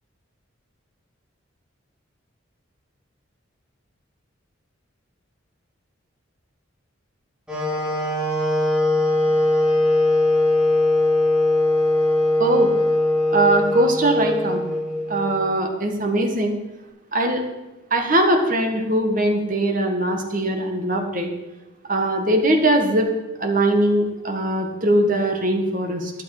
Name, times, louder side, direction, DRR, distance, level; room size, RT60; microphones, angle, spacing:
Wind instrument woodwind instrument, 7.5-15.4, left 1 dB, 5° right, 3.4 m, -20 dB
voice 1, 12.4-12.7 13.3-14.6 15.1-16.5 17.1-17.4 17.9-21.3 21.9-23.1 23.4-26.1, right 1 dB, 40° right, 4 dB, 1.7 m, -21 dB
13.0 x 10.5 x 5.0 m, 1.0 s
head